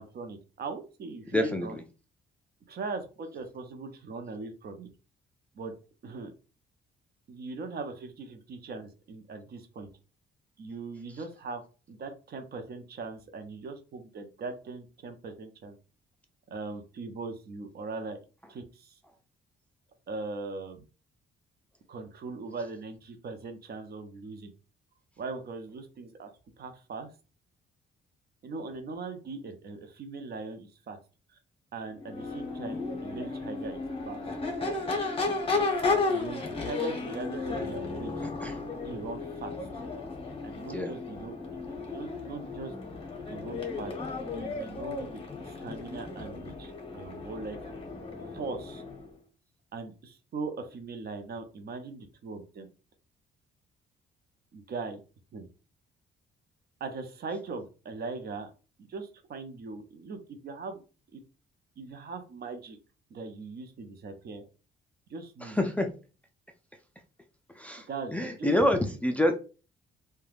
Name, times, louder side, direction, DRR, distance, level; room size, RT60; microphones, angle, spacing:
voice 1, 0.0-1.8 2.7-4.9 5.5-5.7 6.0-6.3 7.3-9.9 10.6-11.6 11.9-15.8 16.5-18.2 18.5-19.0 20.1-20.9 21.9-24.5 25.2-26.3 26.6-27.1 28.4-31.0 31.3-31.4 31.7-34.2 36.1-38.3 38.8-39.8 40.4-42.7 43.3-43.9 44.3-47.8 48.2-48.8 49.7-52.7 54.5-55.0 55.3-55.5 56.8-58.5 58.8-60.8 61.1-61.2 61.8-62.8 63.1-64.4 65.1-65.6 67.9-68.5 68.8-69.0, right 3 dB, 55° right, 7 dB, 0.6 m, -40 dB
voice 2, 1.3-1.7 38.4-38.5 40.7-40.9 65.4-65.9 67.6-67.8 68.1-69.4, left 1 dB, 5° left, 3 dB, 0.4 m, -26 dB
Crowd / Race car auto racing / Accelerating revving vroom, 32.0-49.1, left 3 dB, 30° left, 0.8 m, -34 dB
3.2 x 2.2 x 2.4 m, 0.34 s
cardioid pair, 90°, 20 cm